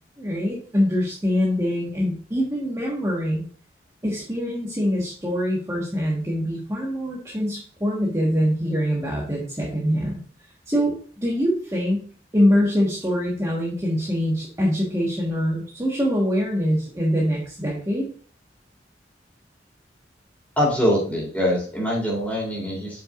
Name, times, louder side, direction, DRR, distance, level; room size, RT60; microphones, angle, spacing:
voice 1, 0.2-3.4 4.0-10.2 10.7-10.9 11.2-12.0 12.3-18.1, equal, 15° right, -5 dB, 1.5 m, -24 dB
voice 2, 20.6-23.0, equal, 10° left, -3 dB, 3.4 m, -23 dB
7.8 x 6.0 x 2.5 m, 0.43 s
head